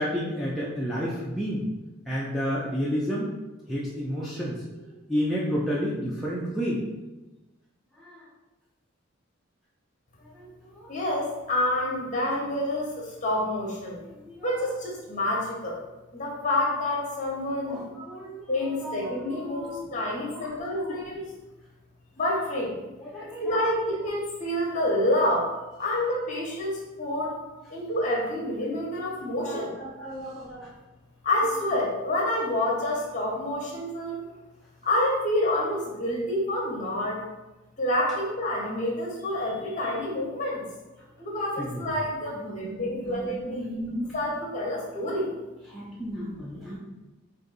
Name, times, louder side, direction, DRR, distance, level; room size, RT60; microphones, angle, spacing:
voice 1, 0.0-1.7 2.1-3.3 3.7-6.8 8.0-8.3 10.2-10.9 14.1-14.6 17.7-19.9 20.3-21.0 23.0-23.7 29.4-30.7 41.6-41.9 42.4-42.7 43.0-44.1 45.7-46.8, equal, ahead, -7 dB, 0.4 m, -32 dB
voice 2, 10.9-14.0 14.4-15.8 16.1-17.8 18.5-21.2 22.2-22.8 23.4-25.5 25.8-27.4 27.7-29.7 31.2-34.2 34.8-37.2 37.8-40.6 41.2-43.7 44.1-45.3, left 1 dB, 35° left, -2 dB, 1.0 m, -28 dB
3.9 x 2.6 x 3.9 m, 1.1 s
head